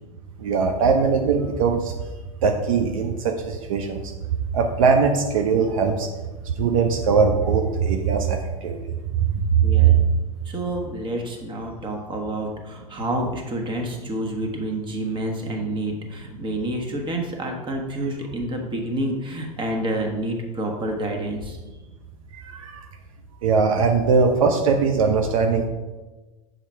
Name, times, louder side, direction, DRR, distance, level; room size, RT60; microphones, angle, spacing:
voice 1, 0.4-1.9 2.4-4.0 4.5-6.1 6.4-8.9 9.6-10.0 22.3-22.8 23.4-25.7, right 5 dB, 70° right, 4 dB, 0.6 m, -20 dB
voice 2, 9.6-10.0 10.4-21.6 23.7-23.8, right 1 dB, 25° right, 2 dB, 1.4 m, -28 dB
7.0 x 3.8 x 4.7 m, 1.2 s
hypercardioid pair, 85°, 18 cm